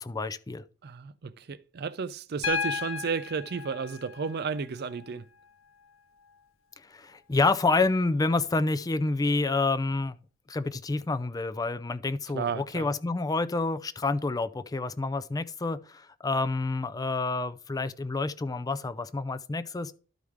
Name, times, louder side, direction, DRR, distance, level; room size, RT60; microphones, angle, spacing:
voice 1, 0.0-0.6 6.9-10.2 10.5-19.9, left 3 dB, 20° left, 0.4 m, -28 dB
voice 2, 0.8-5.3 12.3-12.9, right 5 dB, 55° right, 0.5 m, -33 dB
Piano, 2.4-6.4 8.0-8.1, left 6 dB, 75° left, 0.7 m, -36 dB
12.5 x 4.7 x 3.6 m
head